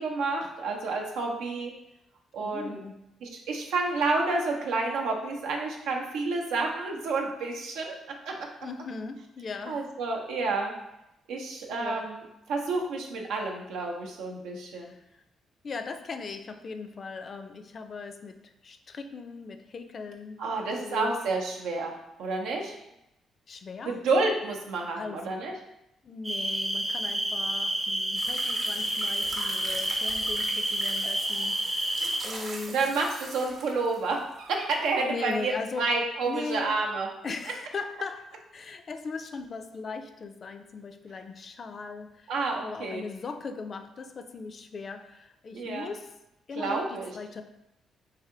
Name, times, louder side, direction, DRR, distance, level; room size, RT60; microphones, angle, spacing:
voice 1, 0.0-1.7 2.3-2.8 3.2-8.5 9.7-10.8 11.3-12.2 12.5-14.9 20.4-22.8 23.8-25.5 32.7-37.1 42.3-43.0 45.5-45.9 46.6-47.1, right 3 dB, 85° right, 0 dB, 0.7 m, -30 dB
voice 2, 2.4-3.0 8.6-9.9 11.7-12.1 14.7-15.0 15.6-21.2 23.5-24.0 24.9-25.4 26.0-32.8 35.0-35.9 36.3-36.8 37.2-42.3 42.6-46.1 46.5-47.4, left 4 dB, 45° left, 8 dB, 0.4 m, -39 dB
sound 1, 26.2-32.2, right 1 dB, 15° right, 0.5 m, -29 dB
sound 2, 28.1-34.3 35.3-35.4, right 2 dB, 55° right, 0.9 m, -41 dB
3.3 x 2.8 x 3.7 m, 0.87 s
cardioid pair, 90°, 0 cm